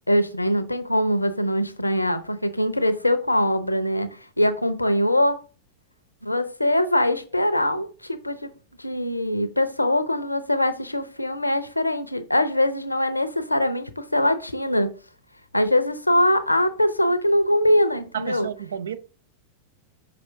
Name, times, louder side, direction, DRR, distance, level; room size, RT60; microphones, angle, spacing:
voice 1, 0.1-5.4 6.2-8.5 8.8-14.9 15.5-18.5, left 1 dB, 85° left, 0.6 m, -22 dB
voice 2, 18.1-19.0, right 9 dB, 70° right, 0.5 m, -31 dB
5.9 x 4.8 x 3.7 m
figure-of-eight pair, 90°, 0 cm